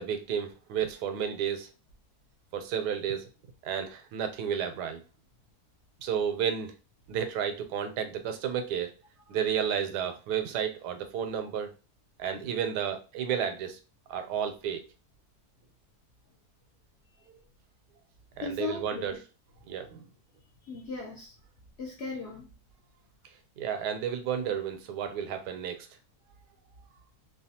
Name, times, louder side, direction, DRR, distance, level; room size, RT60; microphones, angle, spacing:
voice 1, 0.0-1.7 2.5-3.3 3.6-5.0 6.0-6.7 7.1-8.9 9.3-11.7 12.2-13.8 14.1-14.8 18.4-19.2 19.7-20.0 23.6-25.9, right 8 dB, 85° right, 7 dB, 1.2 m, -32 dB
voice 2, 18.4-19.2 20.6-21.3 21.8-22.5, left 4 dB, 60° left, -1 dB, 0.7 m, -37 dB
3.0 x 2.2 x 2.8 m, 0.33 s
omnidirectional pair, 1.7 m